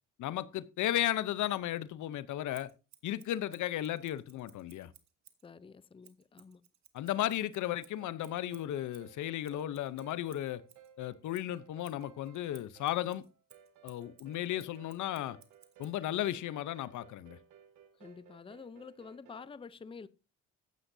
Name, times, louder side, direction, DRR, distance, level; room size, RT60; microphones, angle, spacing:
voice 1, 0.2-2.7 3.0-4.9 6.9-10.6 11.0-13.2 13.8-15.4 15.8-17.4, left 13 dB, 75° left, 0.8 m, -35 dB
Scissors, 2.5-5.5 6.0-10.9 11.3-16.0, right 10 dB, 65° right, 1.5 m, -61 dB
voice 2, 5.4-6.6 18.0-20.1, left 5 dB, 20° left, 0.6 m, -49 dB
sound 1, 7.8-19.5, right 8 dB, 80° right, 1.8 m, -59 dB
13.5 x 9.9 x 2.7 m
cardioid pair, 90°, 30 cm